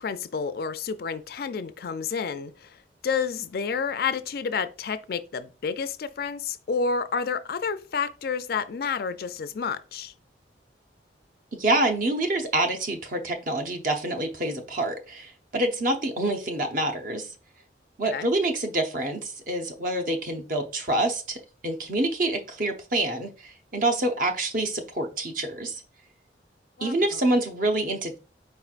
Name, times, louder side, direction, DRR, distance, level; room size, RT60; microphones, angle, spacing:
voice 1, 0.0-2.8 3.0-10.1 18.1-18.3 26.8-27.2, left 5 dB, 55° left, 0.4 m, -30 dB
voice 2, 11.5-17.3 18.0-25.8 26.8-28.2, right 1 dB, 50° right, 0.8 m, -27 dB
4.5 x 4.4 x 2.4 m
head